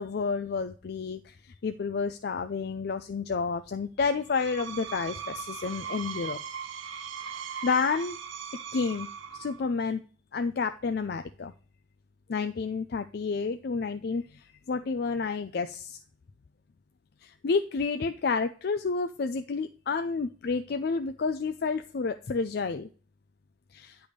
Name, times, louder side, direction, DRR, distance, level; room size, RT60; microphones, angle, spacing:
voice 1, 0.0-1.4 1.6-6.4 7.2-8.2 8.7-9.1 9.3-10.0 10.3-11.5 12.3-16.0 17.2-22.9 23.7-24.0, left 4 dB, 55° left, 9 dB, 0.4 m, -30 dB
Screech, 4.2-9.7, right 7 dB, 85° right, 0.8 m, -39 dB
10.0 x 3.5 x 6.4 m, 0.39 s
head